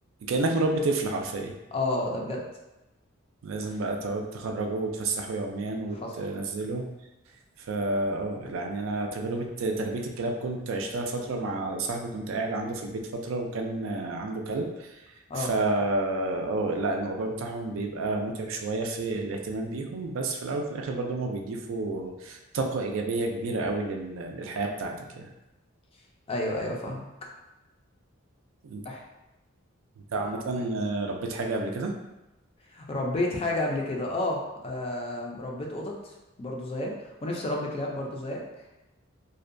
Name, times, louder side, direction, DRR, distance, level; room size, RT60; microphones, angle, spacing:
voice 1, 0.3-1.5 3.4-6.9 7.6-15.0 15.3-25.3 28.6-28.8 30.1-31.9, right 2 dB, 70° right, 2 dB, 0.4 m, -30 dB
voice 2, 1.7-2.4 5.9-6.2 15.3-15.5 26.3-27.1 28.8-29.0 32.7-38.4, left 2 dB, 25° left, -1 dB, 0.4 m, -31 dB
2.5 x 2.1 x 2.5 m, 0.99 s
head